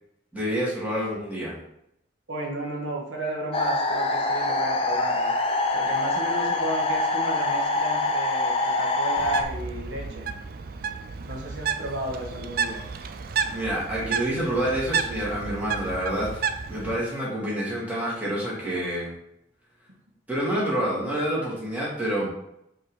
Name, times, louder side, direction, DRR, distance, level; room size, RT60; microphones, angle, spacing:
voice 1, 0.3-1.5 13.5-19.1 20.3-22.3, right 1 dB, 10° right, -7 dB, 2.2 m, -28 dB
voice 2, 2.3-5.3 5.7-10.3 11.2-12.8, right 1 dB, 80° right, 0 dB, 1.3 m, -33 dB
sound 1, 3.5-9.4, left 2 dB, 30° left, 0.6 m, -25 dB
Bird, 9.2-17.0, right 6 dB, 50° right, 0.4 m, -31 dB
5.3 x 3.8 x 4.8 m, 0.77 s
head